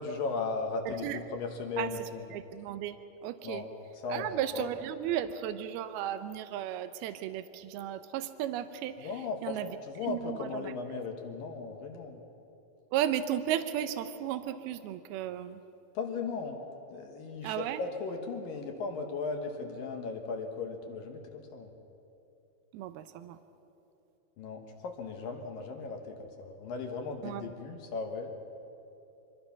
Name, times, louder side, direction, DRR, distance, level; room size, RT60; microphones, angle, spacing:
voice 1, 0.0-2.2 3.4-3.7 4.0-4.7 9.0-12.2 15.9-16.6 16.9-21.7 24.4-28.3, left 4 dB, 65° left, 4 dB, 2.5 m, -37 dB
voice 2, 0.9-1.2 1.8-1.9 2.3-3.0 3.2-3.7 4.1-9.1 9.4-9.7 10.1-10.7 12.9-15.6 17.4-17.8 22.7-23.4 27.2-27.5, right 11 dB, 85° right, 10 dB, 2.2 m, -34 dB
25.5 x 22.0 x 5.9 m, 2.9 s
omnidirectional pair, 5.4 m